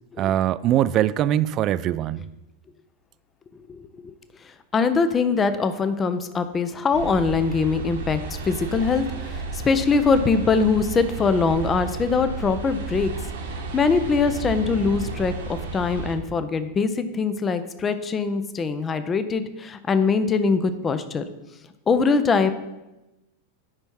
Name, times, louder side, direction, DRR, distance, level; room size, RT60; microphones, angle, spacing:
voice 1, 0.2-2.2, right 12 dB, 35° right, 17 dB, 0.3 m, -22 dB
voice 2, 3.7-4.1 4.7-13.1 13.7-21.2 21.9-22.5, left 4 dB, 20° left, 11 dB, 0.6 m, -22 dB
sound 1, 6.9-16.1, right 4 dB, 60° right, 1.4 m, -33 dB
9.7 x 5.6 x 4.6 m, 1.0 s
figure-of-eight pair, 90°, 0 cm